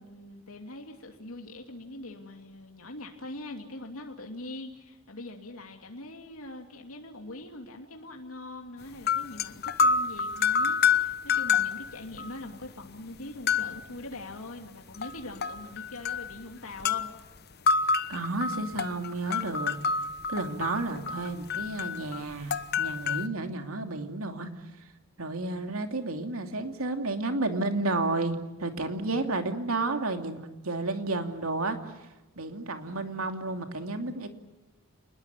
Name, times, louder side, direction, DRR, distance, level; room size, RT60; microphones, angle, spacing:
voice 1, 0.0-17.1, left 2 dB, 85° left, 2 dB, 2.8 m, -42 dB
sound 1, 8.9-12.3 12.6-12.7 13.5-13.9 14.9-16.4 16.8-17.1 17.7-23.3, left 5 dB, 50° left, 1.1 m, -28 dB
voice 2, 18.1-19.8 20.3-24.5 25.2-34.3, right 2 dB, 85° right, 5 dB, 2.8 m, -32 dB
28.5 x 21.0 x 8.4 m, 1.0 s
head